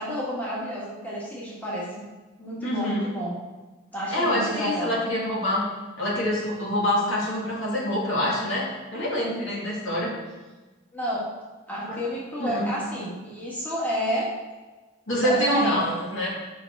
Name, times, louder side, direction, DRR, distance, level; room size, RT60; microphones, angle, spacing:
voice 1, 0.0-2.0 2.4-3.3 3.9-5.0 10.9-11.2 11.7-14.3 15.1-15.9, equal, 10° left, -7 dB, 1.7 m, -30 dB
voice 2, 2.6-3.0 4.1-5.7 6.0-10.1 11.8-12.0 12.4-12.7 15.1-16.3, left 1 dB, 70° left, -5 dB, 2.3 m, -26 dB
7.4 x 5.4 x 4.7 m, 1.2 s
head